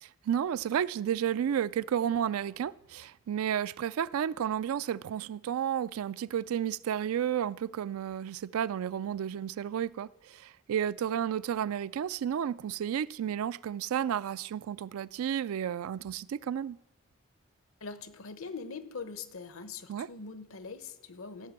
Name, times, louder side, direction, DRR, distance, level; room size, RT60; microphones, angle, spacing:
voice 1, 0.0-16.8 19.9-20.1, right 9 dB, 80° right, 0.3 m, -32 dB
voice 2, 17.8-21.5, left 4 dB, 75° left, 0.9 m, -42 dB
15.0 x 5.9 x 7.5 m
head